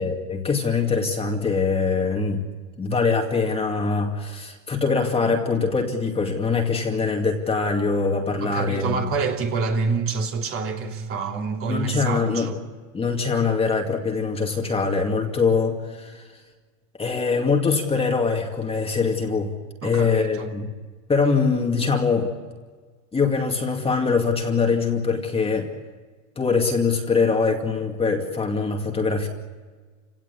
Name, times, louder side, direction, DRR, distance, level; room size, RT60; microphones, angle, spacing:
voice 1, 0.0-2.4 2.8-9.0 11.7-12.5 12.9-16.2 17.0-19.5 19.8-20.7 21.1-22.3 23.1-25.7 26.4-29.3, left 4 dB, 15° left, 2.3 m, -23 dB
voice 2, 8.4-12.6 19.8-20.5, right 5 dB, 30° right, 3.1 m, -27 dB
28.5 x 17.5 x 8.5 m
supercardioid pair, 135°, 40 cm